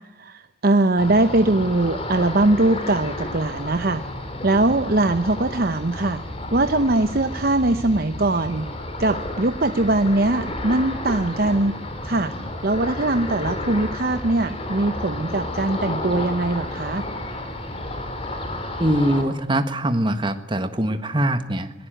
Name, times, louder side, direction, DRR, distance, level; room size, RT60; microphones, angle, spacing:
voice 1, 0.2-4.0 4.4-6.2 6.5-8.7 9.0-11.7 12.0-12.3 12.6-17.1, right 2 dB, 50° right, 9 dB, 0.8 m, -21 dB
Ocean, 1.0-19.2, left 1 dB, 30° left, 3.8 m, -31 dB
voice 2, 18.8-21.7, right 1 dB, 25° right, 9 dB, 1.5 m, -22 dB
21.5 x 18.5 x 9.1 m, 0.82 s
head